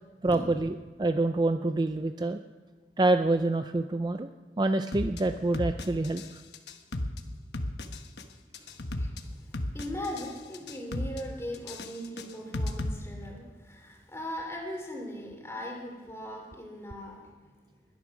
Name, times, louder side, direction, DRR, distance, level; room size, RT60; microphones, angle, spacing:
voice 1, 0.2-0.7 1.0-2.4 3.0-4.3 4.6-6.4, right 2 dB, 25° right, 8 dB, 0.4 m, -26 dB
sound 1, 4.9-5.2 5.5-6.3 6.5-7.2 7.5-8.2 8.5-9.2 9.5-10.3 10.5-11.2 11.5-12.9, left 1 dB, 70° left, 1.2 m, -33 dB
voice 2, 8.7-17.2, equal, 15° left, 1 dB, 3.0 m, -39 dB
21.0 x 11.0 x 6.1 m, 1.4 s
head